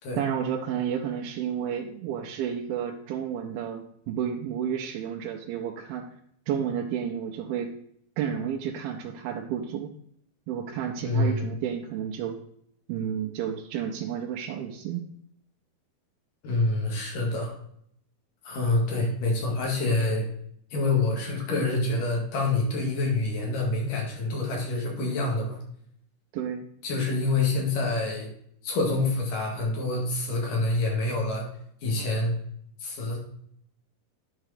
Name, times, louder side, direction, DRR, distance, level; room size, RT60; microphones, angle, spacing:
voice 1, 0.2-6.1 6.5-7.7 8.2-9.9 10.5-12.4 12.9-15.0 26.3-26.6, right 8 dB, 80° right, 1 dB, 2.5 m, -31 dB
voice 2, 11.0-11.5 16.4-17.5 18.4-20.3 20.7-25.6 26.8-28.3 28.6-31.5 31.8-32.4 32.8-33.2, left 2 dB, 60° left, 0 dB, 3.3 m, -26 dB
10.0 x 4.7 x 5.0 m, 0.69 s
omnidirectional pair, 4.5 m